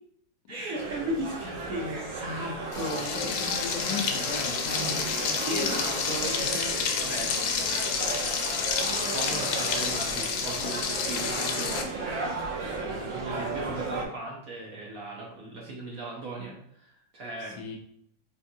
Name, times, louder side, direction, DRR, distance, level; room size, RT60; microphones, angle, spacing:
voice 1, 0.5-3.2 5.0-7.7 9.1-11.7 12.0-12.2 12.8-17.6, right 1 dB, 60° right, -3 dB, 1.0 m, -37 dB
sound 1, 0.7-14.1, right 3 dB, 80° right, 1.7 m, -35 dB
Frying (food), 2.7-11.8, left 6 dB, 85° left, 1.4 m, -30 dB
voice 2, 2.9-6.3 6.5-6.6 17.4-17.8, left 4 dB, 70° left, 2 dB, 1.2 m, -38 dB
4.3 x 3.6 x 2.6 m, 0.71 s
omnidirectional pair, 2.2 m